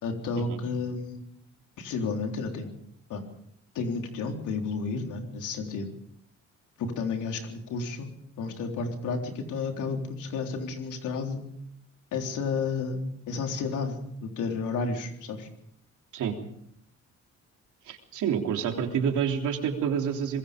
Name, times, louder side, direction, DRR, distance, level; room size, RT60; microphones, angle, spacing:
voice 1, 0.0-1.2 1.8-2.7 3.1-3.2 3.7-5.9 6.8-8.1 8.4-11.4 12.1-15.5, left 4 dB, 85° left, 3 dB, 3.8 m, -32 dB
voice 2, 17.9-20.4, right 7 dB, 80° right, 3 dB, 3.4 m, -28 dB
24.5 x 21.5 x 5.2 m, 0.71 s
cardioid pair, 90°, 30 cm